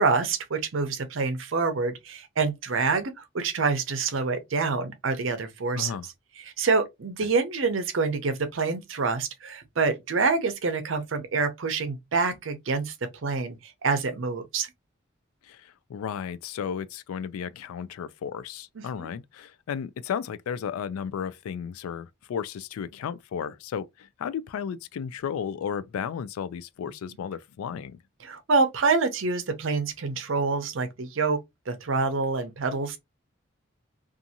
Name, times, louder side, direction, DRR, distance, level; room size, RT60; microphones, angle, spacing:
voice 1, 0.0-5.9 6.6-12.9 13.2-13.6 13.8-14.7 18.8-19.1 28.2-31.4 31.7-33.0, right 4 dB, 65° right, 0.6 m, -26 dB
voice 2, 5.8-6.1 15.4-28.0, left 7 dB, 90° left, 0.3 m, -34 dB
2.6 x 2.4 x 2.7 m
head